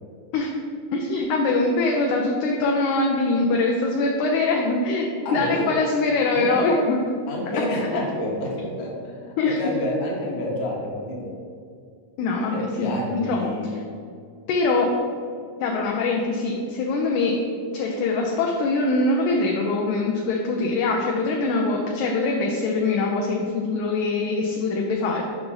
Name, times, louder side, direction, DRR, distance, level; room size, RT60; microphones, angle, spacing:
voice 1, 0.9-7.0 9.4-9.6 12.2-13.5 14.5-14.9 15.6-17.4 17.7-25.2, left 3 dB, 80° left, 0 dB, 2.0 m, -23 dB
voice 2, 5.2-5.7 6.3-6.7 7.3-11.3 12.5-13.7, left 1 dB, 60° left, -2 dB, 2.2 m, -29 dB
5.9 x 5.3 x 3.8 m, 2.3 s
omnidirectional pair, 3.7 m